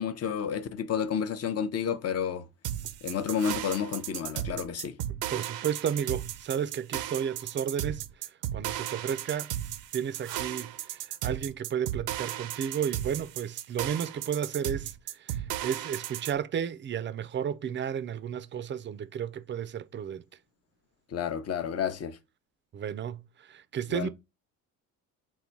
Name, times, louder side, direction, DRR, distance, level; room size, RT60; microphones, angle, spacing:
voice 1, 0.0-2.5 3.0-5.0 21.1-22.2 23.9-24.1, left 7 dB, 45° left, 0.7 m, -30 dB
sound 1, 2.6-16.4, right 12 dB, 80° right, 0.6 m, -35 dB
voice 2, 5.3-8.0 8.5-9.5 9.9-14.9 15.2-20.2 22.7-23.2 23.5-24.1, right 8 dB, 35° right, 0.4 m, -32 dB
3.8 x 2.2 x 4.3 m
supercardioid pair, 85°, 36 cm